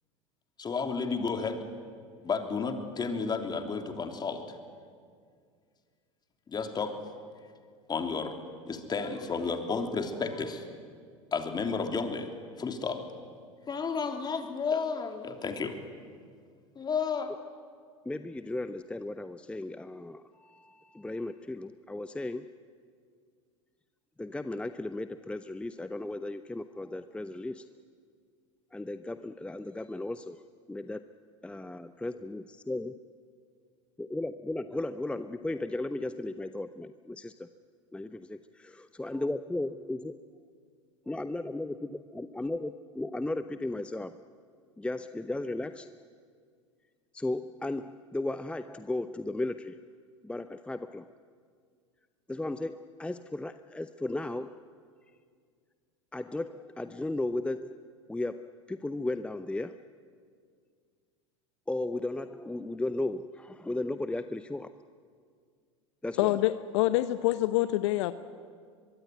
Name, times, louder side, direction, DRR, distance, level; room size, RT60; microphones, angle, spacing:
voice 1, 0.6-1.6 2.2-4.4 6.5-6.9 7.9-8.3 8.6-10.7 11.3-12.3 12.6-13.0 13.7-15.8 16.7-17.3, left 5 dB, 25° left, 5 dB, 3.2 m, -32 dB
voice 2, 18.0-22.5 24.2-27.7 28.7-30.4 30.7-31.1 31.4-32.9 34.0-37.5 37.9-40.2 41.1-44.2 44.8-46.0 47.1-49.8 50.2-51.1 52.3-54.6 56.1-57.8 58.1-59.8 61.7-64.7 66.0-66.4, left 2 dB, 5° left, 11 dB, 0.7 m, -35 dB
voice 3, 66.2-68.1, left 16 dB, 65° left, 13 dB, 0.8 m, -26 dB
23.5 x 23.0 x 9.4 m, 2.1 s
hypercardioid pair, 80°, 16 cm